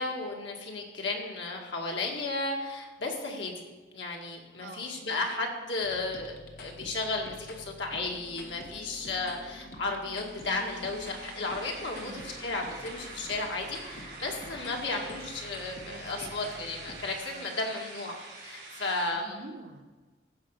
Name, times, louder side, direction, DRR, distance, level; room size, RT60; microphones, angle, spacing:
voice 1, 0.0-19.4, left 3 dB, 85° left, 0 dB, 2.0 m, -34 dB
voice 2, 4.6-5.0 11.9-12.3 15.8-16.8 17.3-17.6 19.1-19.8, right 2 dB, 70° right, 2 dB, 1.5 m, -47 dB
sound 1, 5.8-17.2, left 1 dB, 55° left, 1.3 m, -48 dB
sound 2, 10.1-19.1, right 3 dB, 55° right, 4.1 m, -46 dB
15.0 x 5.2 x 6.6 m, 1.3 s
head